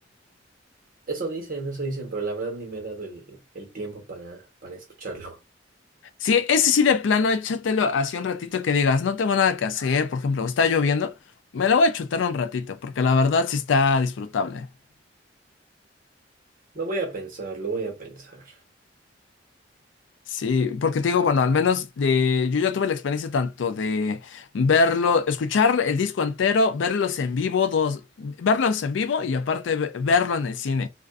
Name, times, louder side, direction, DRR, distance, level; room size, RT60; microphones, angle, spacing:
voice 1, 1.1-5.4 16.7-18.6, right 3 dB, 50° right, 1.1 m, -33 dB
voice 2, 6.2-11.1 11.5-14.7 20.3-30.9, left 5 dB, 90° left, 0.4 m, -22 dB
2.4 x 2.2 x 2.4 m
head